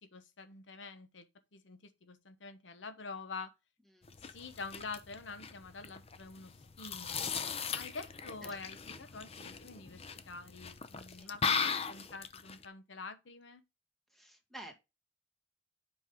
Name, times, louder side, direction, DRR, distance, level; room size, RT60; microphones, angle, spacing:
voice 1, 0.0-1.3 1.5-3.5 4.2-7.3 7.7-13.6, left 4 dB, 85° left, 1.0 m, -47 dB
sound 1, 4.0-12.7, left 6 dB, 35° left, 0.7 m, -38 dB
voice 2, 14.1-14.8, right 1 dB, ahead, 1.8 m, -51 dB
7.5 x 5.4 x 3.7 m
head